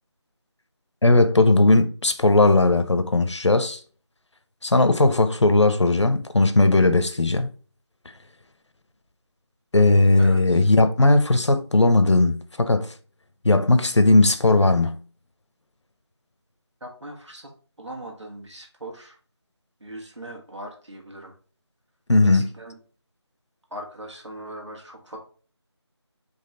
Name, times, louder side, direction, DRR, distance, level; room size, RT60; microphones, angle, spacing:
voice 1, 1.0-3.8 4.6-7.5 9.7-12.9 13.4-15.0 22.1-22.5, left 2 dB, 80° left, 0.7 m, -18 dB
voice 2, 10.2-10.7 16.8-17.5 17.8-19.2 19.8-21.4 22.2-22.8 23.7-25.2, right 1 dB, 85° right, 1.8 m, -40 dB
4.2 x 3.1 x 3.9 m
figure-of-eight pair, 170°, 15 cm